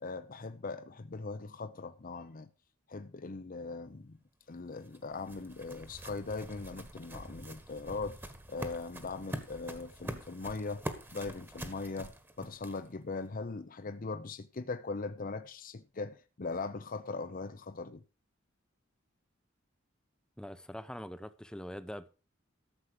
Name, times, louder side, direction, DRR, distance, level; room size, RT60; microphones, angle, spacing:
voice 1, 0.0-2.5 2.9-4.2 4.5-10.8 11.1-18.0, left 3 dB, 45° left, 0.7 m, -40 dB
sound 1, 4.5-13.0, right 1 dB, 10° right, 1.4 m, -45 dB
voice 2, 20.4-22.1, equal, 5° left, 0.7 m, -43 dB
13.5 x 7.2 x 4.9 m
head